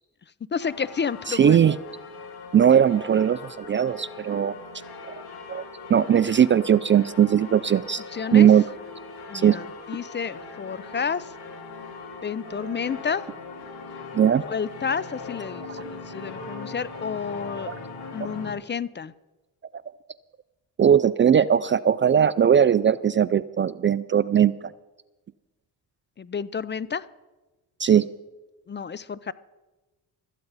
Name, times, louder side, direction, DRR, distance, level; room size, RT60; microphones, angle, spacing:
voice 1, 0.5-1.6 8.1-8.5 9.3-11.3 12.2-13.3 14.4-17.7 18.1-19.1 26.2-27.0 28.7-29.3, left 6 dB, 25° left, 19 dB, 0.5 m, -30 dB
sound 1, 0.6-18.5, left 3 dB, 65° left, 2.8 m, -40 dB
voice 2, 1.3-1.8 2.5-4.6 5.5-8.0 8.3-8.6 9.3-9.6 14.1-14.4 17.7-17.8 20.8-24.5 27.8-28.1, right 8 dB, 30° right, 16 dB, 0.4 m, -19 dB
16.5 x 13.5 x 4.1 m, 1.1 s
cardioid pair, 75°, 40 cm